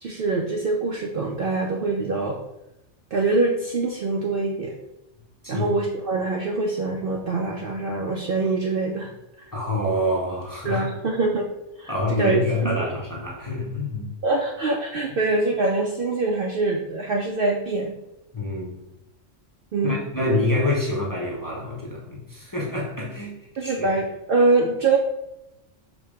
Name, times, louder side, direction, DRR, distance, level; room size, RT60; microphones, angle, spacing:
voice 1, 0.0-2.4 3.1-4.7 5.5-9.1 10.6-11.5 11.8-12.4 12.6-12.8 14.2-17.9 19.7-20.1 23.6-25.0, right 3 dB, 60° right, 0 dB, 0.6 m, -24 dB
voice 2, 9.5-10.8 11.9-14.1 18.3-18.8 19.8-23.9, left 1 dB, 20° left, -4 dB, 0.6 m, -26 dB
5.0 x 2.1 x 4.8 m, 0.91 s
omnidirectional pair, 1.3 m